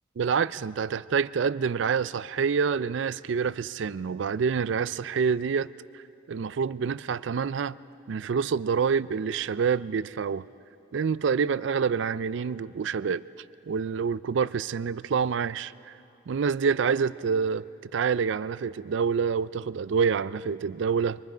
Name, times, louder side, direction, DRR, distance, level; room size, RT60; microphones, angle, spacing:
voice 1, 0.2-5.7 5.9-6.0 6.3-7.8 8.1-10.4 10.9-13.2 13.7-15.9 16.3-17.6 17.9-21.2, right 6 dB, 70° right, 0.4 m, -27 dB
25.5 x 22.5 x 5.0 m
head